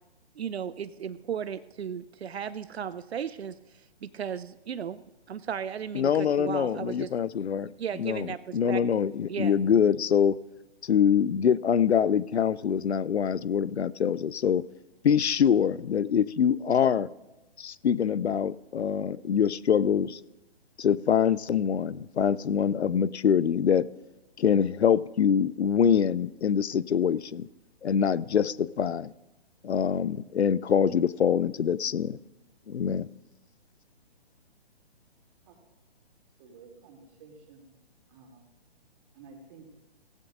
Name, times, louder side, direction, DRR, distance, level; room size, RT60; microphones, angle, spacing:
voice 1, 0.4-3.6 4.0-5.0 5.3-7.1 7.8-9.0 9.3-9.6, right 8 dB, 75° right, 14 dB, 0.6 m, -35 dB
voice 2, 5.9-10.4 10.8-14.6 15.0-17.1 17.6-20.2 20.8-23.9 24.4-27.5 27.8-29.1 29.6-32.2 32.7-33.1, left 8 dB, 85° left, 19 dB, 0.5 m, -24 dB
voice 3, 36.4-37.7 38.1-38.4 39.1-39.6, right 4 dB, 35° right, 1 dB, 2.7 m, -51 dB
17.0 x 15.0 x 2.5 m, 1.0 s
figure-of-eight pair, 135°, 32 cm